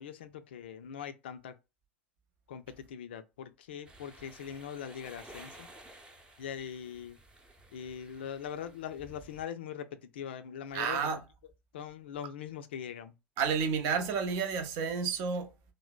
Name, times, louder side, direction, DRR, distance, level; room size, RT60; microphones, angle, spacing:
voice 1, 0.0-1.6 2.5-5.7 6.4-7.2 7.7-11.1 11.7-13.1, left 8 dB, 70° left, 0.4 m, -42 dB
sound 1, 3.8-9.4, right 1 dB, 15° right, 0.7 m, -54 dB
voice 2, 10.7-11.2 13.4-15.5, right 6 dB, 55° right, 0.6 m, -30 dB
3.2 x 2.1 x 2.2 m
figure-of-eight pair, 75°, 6 cm